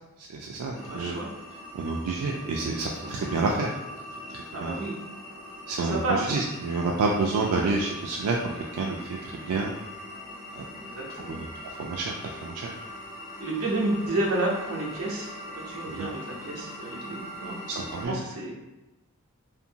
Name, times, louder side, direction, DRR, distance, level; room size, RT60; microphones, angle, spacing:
voice 1, 0.2-1.1 1.7-3.7 4.6-4.7 5.7-8.4 8.7-9.7 10.6-10.7 11.3-12.7 16.0-16.1 17.8-18.2, right 3 dB, 90° right, -1 dB, 0.3 m, -29 dB
sound 1, 0.7-18.1, left 1 dB, ahead, 1.0 m, -42 dB
voice 2, 0.7-1.3 3.0-3.3 4.5-5.0 5.7-6.4 10.8-11.4 13.4-15.3 15.5-17.6 18.0-18.7, right 2 dB, 65° right, -4 dB, 0.7 m, -31 dB
2.6 x 2.5 x 2.7 m, 1.0 s
head